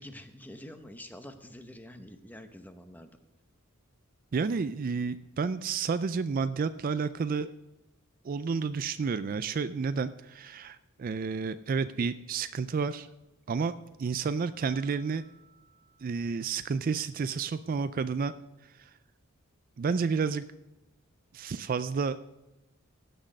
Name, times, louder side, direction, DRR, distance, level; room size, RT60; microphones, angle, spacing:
voice 1, 0.0-3.1, left 1 dB, 10° left, 8 dB, 0.8 m, -47 dB
voice 2, 4.3-7.5 8.2-13.1 13.5-13.7 14.0-15.2 16.0-18.3 18.6-18.9 19.8-20.4 21.3-22.2, right 5 dB, 40° right, 13 dB, 0.3 m, -30 dB
sound 1, 14.5-17.3, right 5 dB, 50° left, 3.7 m, -62 dB
16.0 x 6.2 x 6.4 m, 0.97 s
head